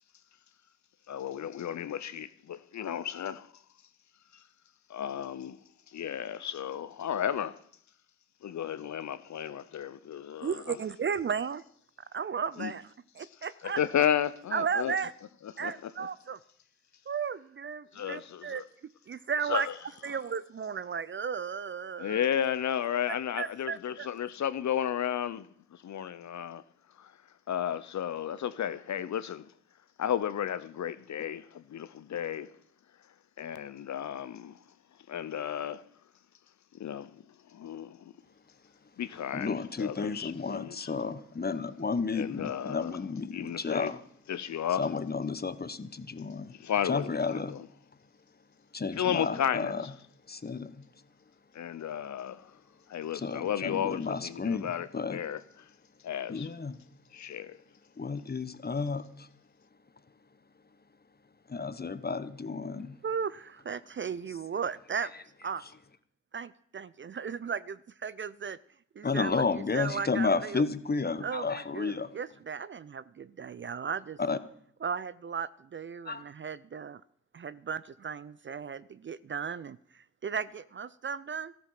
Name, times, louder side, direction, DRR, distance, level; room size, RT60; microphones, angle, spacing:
voice 1, 1.1-3.6 4.3-4.4 4.9-5.6 5.9-7.6 8.4-10.8 12.6-12.7 13.2-15.0 15.4-15.9 17.9-18.6 19.4-19.8 22.0-26.6 26.9-27.2 27.5-29.5 30.0-32.5 33.4-34.6 35.1-35.8 36.7-38.1 39.0-40.9 42.1-43.0 43.3-43.9 44.3-44.9 46.5-47.7 48.9-49.9 51.5-52.6 52.9-55.7 56.0-56.5 57.1-57.6, left 9 dB, 50° left, 0.8 m, -33 dB
voice 2, 10.4-11.6 12.1-12.9 13.2-13.8 14.5-15.1 15.6-16.4 17.1-19.7 20.0-22.2 23.4-24.1 63.0-65.1 65.4-65.6 66.3-68.6 69.0-70.6 71.2-74.2 74.8-77.0 77.3-81.5, right 6 dB, 35° right, 0.5 m, -35 dB
voice 3, 39.3-44.0 44.8-46.5 46.9-47.6 48.7-49.8 50.3-50.8 53.1-55.2 56.3-56.8 58.0-59.3 61.5-63.0 69.0-72.1 74.2-74.4 76.0-76.2, left 4 dB, 25° left, 1.3 m, -32 dB
14.5 x 12.5 x 5.9 m
hypercardioid pair, 40°, 37 cm